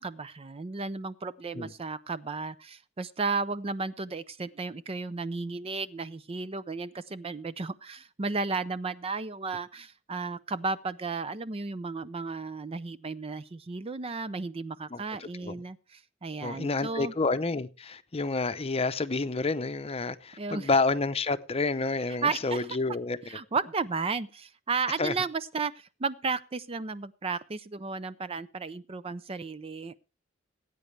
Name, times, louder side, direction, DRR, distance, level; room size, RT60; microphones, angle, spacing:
voice 1, 0.0-17.1 20.4-20.7 22.2-22.7 23.3-30.0, right 4 dB, 30° right, 0.5 m, -34 dB
voice 2, 16.4-23.2 25.0-25.1, left 3 dB, 30° left, 0.7 m, -29 dB
19.0 x 9.1 x 3.3 m
head